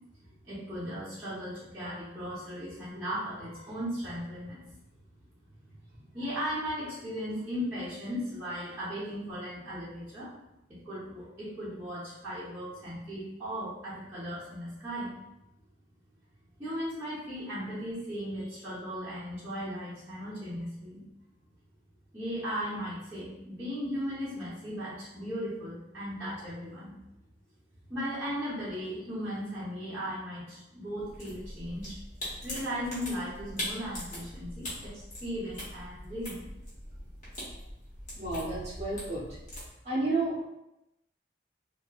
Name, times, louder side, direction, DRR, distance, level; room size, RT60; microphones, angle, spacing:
voice 1, 0.1-4.8 5.7-10.3 10.7-15.1 16.6-21.0 22.1-26.9 27.9-32.0 32.4-36.5, equal, 10° right, -13 dB, 0.7 m, -37 dB
sound 1, 31.0-39.7, equal, 40° left, 1.0 m, -42 dB
voice 2, 38.1-39.2 39.8-40.4, right 2 dB, 35° right, -7 dB, 1.0 m, -31 dB
3.0 x 2.2 x 2.2 m, 0.90 s
head